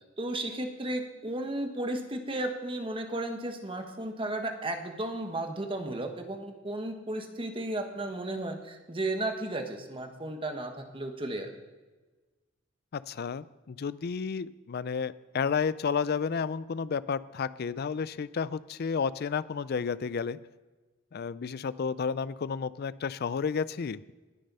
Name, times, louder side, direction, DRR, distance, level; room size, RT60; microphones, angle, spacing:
voice 1, 0.2-11.5, right 1 dB, 25° right, 5 dB, 1.3 m, -34 dB
voice 2, 12.9-20.4 21.1-24.1, left 6 dB, 50° left, 17 dB, 0.4 m, -31 dB
20.0 x 6.8 x 5.5 m, 1.3 s
head